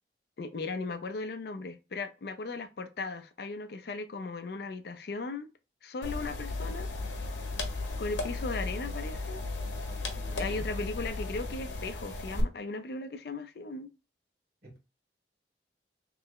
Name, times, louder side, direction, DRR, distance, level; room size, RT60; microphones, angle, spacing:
voice 1, 0.4-5.5 5.8-6.9 8.0-9.4 10.4-13.9, left 3 dB, 60° left, 0.4 m, -37 dB
sound 1, 6.0-12.4, left 2 dB, 85° left, 0.8 m, -35 dB
voice 2, 10.1-10.7 14.6-14.8, right 1 dB, 55° right, 1.3 m, -50 dB
3.2 x 2.0 x 3.6 m
head